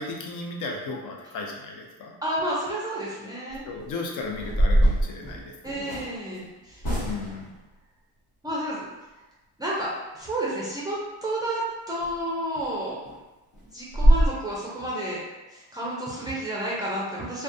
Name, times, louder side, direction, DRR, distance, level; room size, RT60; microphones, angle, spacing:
voice 1, 0.0-2.1 3.7-6.0 7.0-7.5, left 3 dB, 55° left, 0 dB, 0.6 m, -35 dB
voice 2, 2.2-3.6 5.6-6.8 8.4-8.8 9.6-13.0 13.6-15.2 15.5-17.4, right 1 dB, 10° right, -6 dB, 0.4 m, -31 dB
sound 1, 3.5-3.8 4.3-6.1 6.8-7.5 12.0-12.1 12.5-12.7 13.1-13.2 13.5-13.6 13.9-14.3, right 1 dB, 70° left, 1.1 m, -22 dB
2.2 x 2.2 x 2.6 m, 1.1 s
cardioid pair, 105°, 38 cm